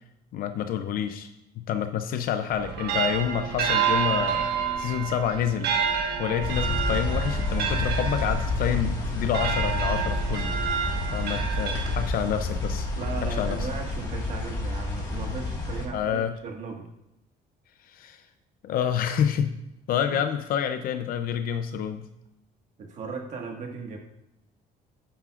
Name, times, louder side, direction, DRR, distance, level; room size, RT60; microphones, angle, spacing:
voice 1, 0.3-1.3 1.6-4.5 4.8-10.6 11.1-12.9 13.2-13.7 15.9-16.4 17.8-18.2 18.6-19.5 19.9-22.1, left 9 dB, 60° left, 8 dB, 0.6 m, -28 dB
sound 1, 2.5-12.4, right 7 dB, 75° right, 1.3 m, -29 dB
sound 2, 6.4-15.9, left 2 dB, 25° left, 1.8 m, -29 dB
voice 2, 13.0-16.9 20.1-20.2 22.8-24.0, right 5 dB, 45° right, 2 dB, 1.7 m, -37 dB
11.0 x 8.9 x 2.5 m, 0.85 s
cardioid pair, 165°, 17 cm